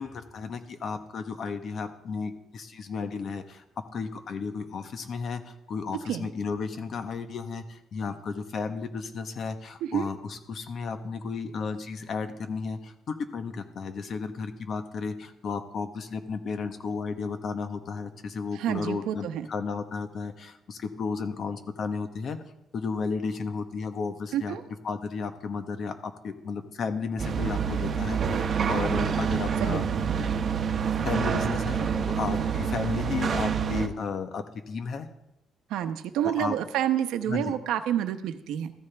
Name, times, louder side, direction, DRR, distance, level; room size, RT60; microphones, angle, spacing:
voice 1, 0.0-3.6 3.9-22.4 22.7-24.6 24.8-29.8 31.0-31.8 32.2-35.1 36.2-36.5 37.3-37.5, left 5 dB, 50° left, 8 dB, 1.2 m, -33 dB
voice 2, 18.5-19.5 24.3-24.6 29.6-29.8 30.1-30.2 35.7-38.7, right 10 dB, 90° right, 8 dB, 0.9 m, -29 dB
sound 1, 27.2-33.9, right 7 dB, 45° right, 1.0 m, -27 dB
14.5 x 14.0 x 3.5 m, 0.88 s
cardioid pair, 120°, 0 cm